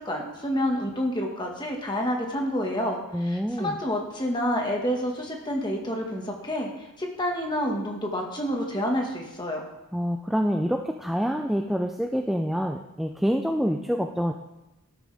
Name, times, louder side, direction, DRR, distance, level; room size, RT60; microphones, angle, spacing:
voice 1, 0.0-9.6, equal, 20° left, 1 dB, 1.7 m, -28 dB
voice 2, 3.1-3.8 9.9-14.3, equal, ahead, 3 dB, 0.4 m, -26 dB
14.0 x 12.5 x 3.5 m, 0.98 s
head